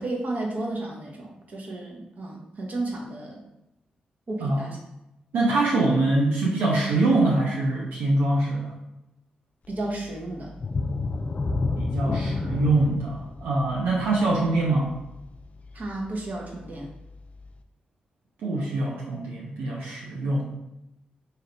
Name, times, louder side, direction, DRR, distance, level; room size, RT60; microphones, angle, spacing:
voice 1, 0.0-3.4 4.3-4.8 9.7-10.5 15.7-16.9, right 2 dB, 55° right, -1 dB, 1.0 m, -33 dB
voice 2, 5.3-8.7 11.8-14.9 18.4-20.5, right 2 dB, 90° right, -4 dB, 0.6 m, -24 dB
sound 1, 10.6-16.0 16.5-16.6 17.1-17.2, left 3 dB, 45° left, 0.4 m, -30 dB
3.3 x 2.7 x 3.9 m, 0.91 s
supercardioid pair, 50°, 3 cm